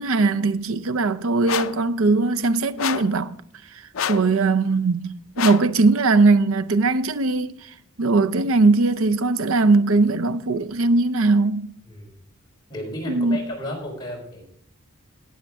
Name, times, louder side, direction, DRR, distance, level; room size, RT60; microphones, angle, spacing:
voice 1, 0.0-3.4 4.1-7.6 8.0-11.7 13.1-13.4, right 3 dB, 75° right, 0.6 m, -20 dB
sound 1, 1.5-1.8 2.8-3.2 3.9-4.3 5.4-5.7, left 8 dB, 70° left, 0.5 m, -27 dB
voice 2, 12.7-14.4, left 1 dB, 20° left, 4.0 m, -33 dB
18.5 x 7.2 x 3.6 m
head